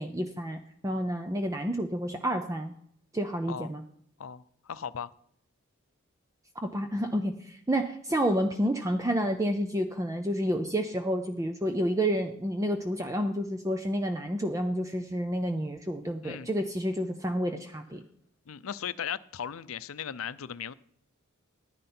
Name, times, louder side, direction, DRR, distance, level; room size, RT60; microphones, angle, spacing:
voice 1, 0.0-2.7 3.1-3.8 6.6-18.0, equal, 15° right, 6 dB, 0.6 m, -30 dB
voice 2, 4.2-5.1 16.2-16.5 18.5-20.7, left 8 dB, 80° left, 15 dB, 0.5 m, -37 dB
11.5 x 10.5 x 4.3 m, 0.66 s
head